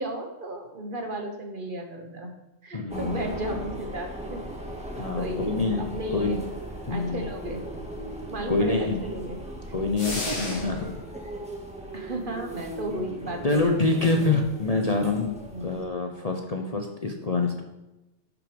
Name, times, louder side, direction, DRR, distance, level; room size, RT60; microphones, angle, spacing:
voice 1, 0.0-2.3 2.6-4.4 5.2-6.4 6.9-7.6 8.3-9.4 10.1-10.6 11.9-13.6 13.9-14.1 15.5-15.7, right 1 dB, 45° right, 4 dB, 1.3 m, -34 dB
voice 2, 2.7-3.3 5.0-5.8 6.1-6.4 6.9-7.2 8.5-9.0 9.7-11.0 13.4-15.3 15.6-17.6, left 3 dB, 35° left, 3 dB, 0.8 m, -26 dB
sound 1, 2.9-15.9, right 1 dB, 5° right, 1.7 m, -38 dB
sound 2, 10.0-11.0, left 1 dB, 70° left, 2.6 m, -33 dB
10.5 x 6.4 x 5.2 m, 1.0 s
omnidirectional pair, 1.3 m